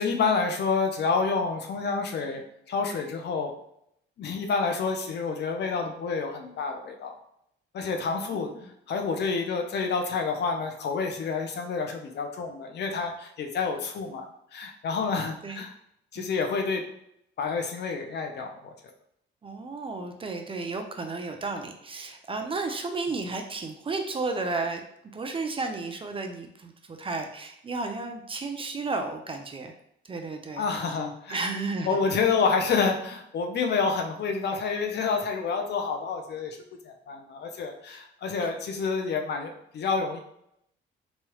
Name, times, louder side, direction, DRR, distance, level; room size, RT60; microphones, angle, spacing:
voice 1, 0.0-2.4 2.7-3.5 4.2-7.1 7.7-8.5 8.9-14.3 14.5-15.7 16.1-16.8 17.4-18.5 30.6-31.4 31.8-36.6 36.9-40.2, left 5 dB, 60° left, 4 dB, 0.6 m, -28 dB
voice 2, 8.1-8.7 15.4-15.6 16.2-16.3 19.4-24.8 25.1-29.7 30.1-30.6 31.3-32.0 37.9-38.0 38.4-38.5, right 3 dB, 25° right, 5 dB, 0.4 m, -33 dB
3.0 x 2.3 x 3.0 m, 0.74 s
cardioid pair, 90°, 20 cm